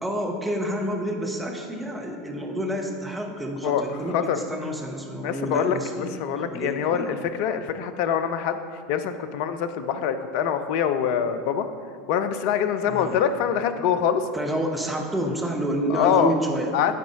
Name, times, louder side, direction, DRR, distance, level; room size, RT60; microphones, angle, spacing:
voice 1, 0.0-4.1 4.5-7.2 12.8-13.2 14.3-16.8, right 1 dB, 5° right, 0 dB, 0.9 m, -29 dB
voice 2, 5.2-8.6 8.9-11.7 12.1-14.3 15.9-16.3 16.7-17.0, left 8 dB, 55° left, 10 dB, 0.4 m, -24 dB
9.3 x 4.1 x 3.6 m, 2.1 s
figure-of-eight pair, 75°, 0 cm